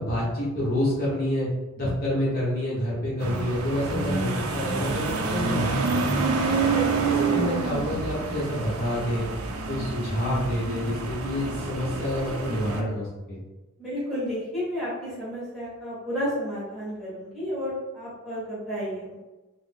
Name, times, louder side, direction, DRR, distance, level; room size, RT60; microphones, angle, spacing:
voice 1, 0.0-1.5 1.8-6.4 7.1-9.3 9.7-13.4, equal, 40° left, -8 dB, 1.0 m, -28 dB
sound 1, 3.2-12.8, right 3 dB, 90° right, 0.5 m, -28 dB
voice 2, 6.6-7.5 13.8-19.2, equal, ahead, -10 dB, 1.3 m, -32 dB
3.3 x 2.0 x 3.5 m, 1.1 s
head